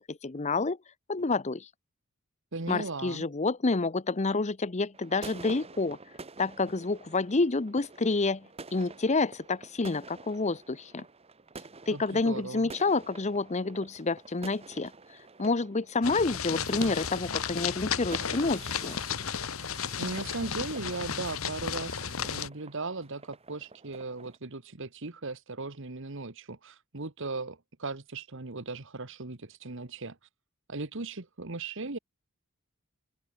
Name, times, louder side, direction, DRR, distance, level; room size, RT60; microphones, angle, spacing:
voice 1, 0.1-0.8 1.1-1.7 2.7-6.0 6.4-8.4 8.7-11.0 11.9-14.9 15.4-19.0, left 3 dB, 35° left, 0.8 m, -28 dB
voice 2, 2.5-3.2 11.9-12.7 16.5-16.6 20.0-30.2 30.7-32.0, right 3 dB, 60° right, 1.6 m, -37 dB
sound 1, 4.9-24.4, right 3 dB, 30° right, 1.3 m, -49 dB
sound 2, 16.0-22.5, left 7 dB, 75° left, 1.3 m, -34 dB
open air
head